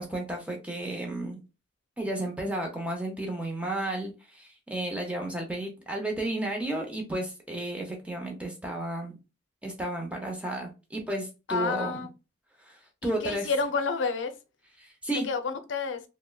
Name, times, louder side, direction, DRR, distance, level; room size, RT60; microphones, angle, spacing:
voice 1, 0.0-1.4 2.0-9.1 9.6-12.0 12.7-13.5 14.8-15.3, right 1 dB, 5° right, 0.6 m, -33 dB
voice 2, 11.5-12.1 13.0-14.3 15.1-16.0, left 4 dB, 80° left, 0.5 m, -30 dB
3.5 x 2.1 x 2.2 m
head